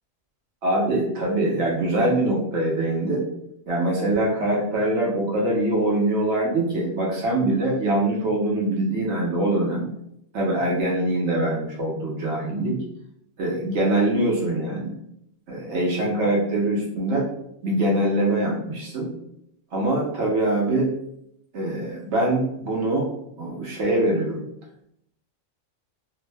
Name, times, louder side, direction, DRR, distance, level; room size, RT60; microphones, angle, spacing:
voice 1, 0.6-3.2 3.7-9.8 10.3-12.8 13.4-15.0 15.5-17.3 17.6-19.1 19.7-20.9 21.5-23.1 23.4-24.5, right 1 dB, 65° right, -3 dB, 0.9 m, -23 dB
2.5 x 2.1 x 3.2 m, 0.75 s
omnidirectional pair, 1.3 m